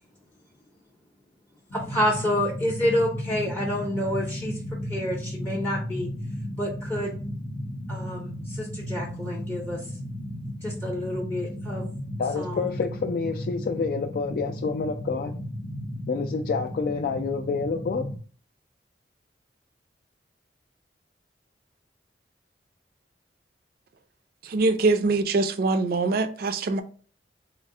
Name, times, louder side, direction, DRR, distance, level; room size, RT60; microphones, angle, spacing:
sound 1, 1.7-18.2, equal, 90° left, 0.7 m, -34 dB
voice 1, 1.7-6.1 6.6-7.1 7.9-9.8 10.6-11.9 12.4-12.8, equal, 10° left, 0.6 m, -28 dB
voice 2, 12.2-15.3 16.1-18.1, left 5 dB, 55° left, 0.3 m, -28 dB
voice 3, 24.5-26.8, right 3 dB, 60° right, 0.4 m, -23 dB
4.3 x 2.0 x 3.6 m
head